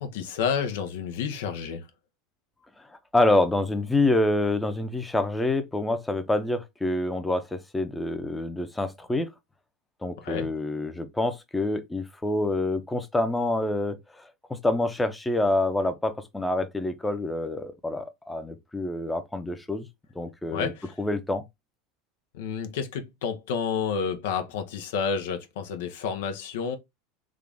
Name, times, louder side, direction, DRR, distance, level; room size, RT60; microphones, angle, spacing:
voice 1, 0.0-1.9 10.2-10.5 20.5-20.9 22.3-26.8, left 6 dB, 80° left, 0.8 m, -30 dB
voice 2, 3.1-9.3 10.0-14.2 14.5-19.9 20.2-20.7 21.0-21.4, left 2 dB, 10° left, 0.7 m, -27 dB
3.7 x 2.4 x 3.4 m
hypercardioid pair, 100°, 0 cm